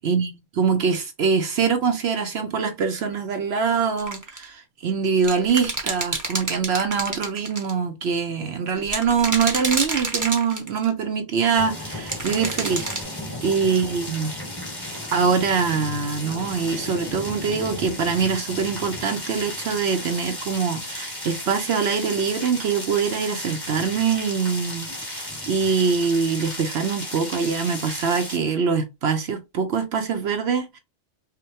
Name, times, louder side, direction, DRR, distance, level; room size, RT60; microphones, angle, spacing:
voice 1, 0.0-13.1 13.4-14.3 15.1-30.8, right 6 dB, 65° right, 0.9 m, -24 dB
sound 1, 4.0-4.4 5.2-7.7 8.9-10.9 12.1-13.0, right 2 dB, 20° right, 0.8 m, -28 dB
sound 2, 11.5-28.4, left 1 dB, 20° left, 1.5 m, -34 dB
5.0 x 2.2 x 2.8 m
omnidirectional pair, 1.2 m